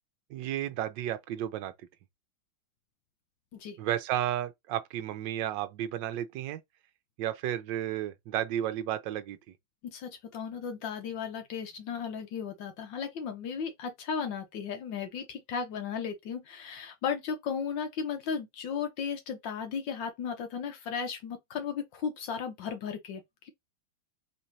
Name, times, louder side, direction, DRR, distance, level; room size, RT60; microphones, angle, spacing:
voice 1, 0.3-1.7 3.8-6.6 7.2-9.4, right 11 dB, 80° right, 1.4 m, -32 dB
voice 2, 9.8-23.5, left 6 dB, 80° left, 1.6 m, -35 dB
4.4 x 3.8 x 2.7 m
omnidirectional pair, 2.0 m